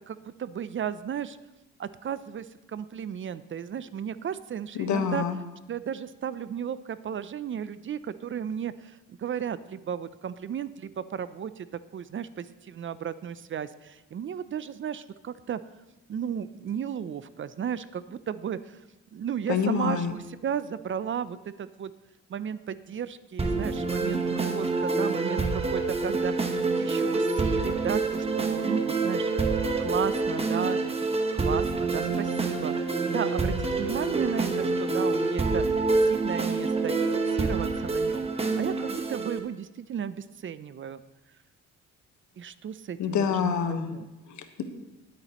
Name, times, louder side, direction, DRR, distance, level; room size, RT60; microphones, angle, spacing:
voice 1, 0.0-1.4 1.8-5.2 5.7-11.7 11.9-15.6 16.1-18.8 19.1-21.9 22.3-26.3 26.8-29.3 29.8-30.8 31.3-32.7 33.1-38.3 38.6-41.0 42.4-44.1, right 8 dB, 40° right, 15 dB, 0.5 m, -34 dB
voice 2, 4.7-5.4 19.5-20.1 43.0-44.0 44.3-44.6, left 7 dB, 70° left, 7 dB, 1.3 m, -27 dB
sound 1, 23.4-39.4, right 3 dB, 20° right, 1.3 m, -27 dB
20.5 x 8.4 x 3.0 m, 1.0 s
cardioid pair, 90°, 30 cm